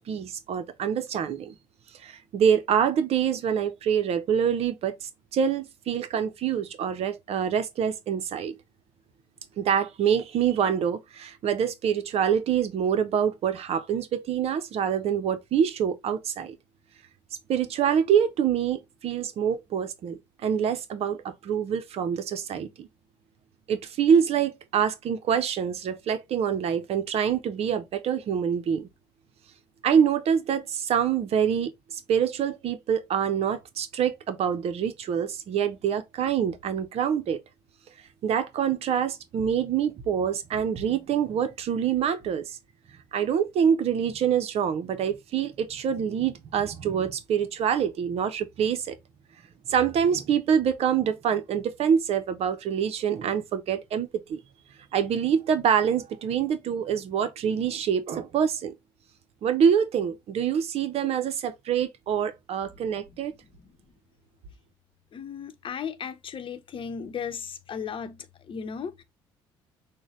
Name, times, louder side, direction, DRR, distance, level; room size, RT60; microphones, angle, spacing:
voice 1, 0.0-1.5 2.0-8.5 9.6-16.6 17.5-22.9 23.7-28.9 29.8-37.4 38.2-42.6 43.1-49.0 49.7-54.4 54.9-58.7 59.4-63.3, right 8 dB, 60° right, 0.7 m, -26 dB
voice 2, 62.7-63.8 65.1-69.0, left 7 dB, 45° left, 0.9 m, -37 dB
6.3 x 2.2 x 3.0 m
hypercardioid pair, 55°, 12 cm